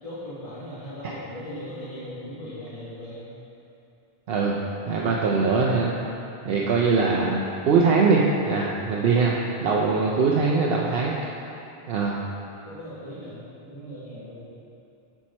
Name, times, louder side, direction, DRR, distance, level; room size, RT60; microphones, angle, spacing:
voice 1, 0.0-3.3 6.4-6.7 12.7-14.4, equal, 35° left, -9 dB, 1.8 m, -39 dB
voice 2, 4.9-5.9 6.5-9.4 9.6-11.2 11.9-12.2, right 4 dB, 70° right, -3 dB, 0.8 m, -22 dB
7.2 x 5.7 x 4.3 m, 2.8 s
omnidirectional pair, 1.0 m